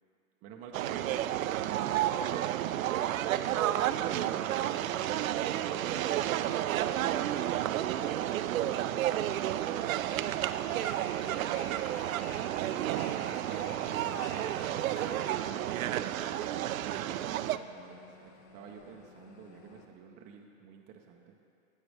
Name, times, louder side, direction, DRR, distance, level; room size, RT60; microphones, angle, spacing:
voice 1, 0.4-2.0 13.4-14.4 16.8-21.4, right 6 dB, 20° right, 1 dB, 0.5 m, -50 dB
sound 1, 0.7-17.6, right 12 dB, 75° right, 0.5 m, -31 dB
sound 2, 2.8-19.9, left 4 dB, 35° left, 0.9 m, -56 dB
voice 2, 3.4-13.9 14.3-16.0, right 8 dB, 60° right, 7 dB, 1.0 m, -50 dB
sound 3, 10.1-15.4, left 2 dB, 70° left, 2.8 m, -49 dB
16.0 x 8.2 x 3.3 m, 2.5 s
hypercardioid pair, 135°, 41 cm